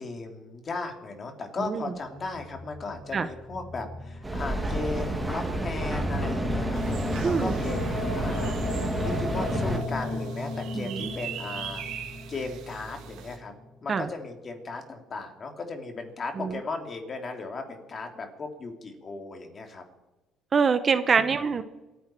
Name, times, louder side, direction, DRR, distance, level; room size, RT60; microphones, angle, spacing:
voice 1, 0.0-13.5 13.8-19.8 21.2-21.3, left 3 dB, 35° left, 4 dB, 2.9 m, -37 dB
sound 1, 2.0-14.2, left 2 dB, 55° left, 2.9 m, -37 dB
Mechanical fan, 4.2-9.8, right 1 dB, 10° right, 2.3 m, -29 dB
sound 2, 6.7-13.4, right 8 dB, 80° right, 2.3 m, -42 dB
voice 2, 7.2-7.5 10.7-11.1 13.9-14.1 16.4-16.5 20.5-21.6, right 5 dB, 35° right, 11 dB, 0.9 m, -24 dB
27.5 x 10.0 x 4.5 m, 1.1 s
cardioid pair, 120°, 0 cm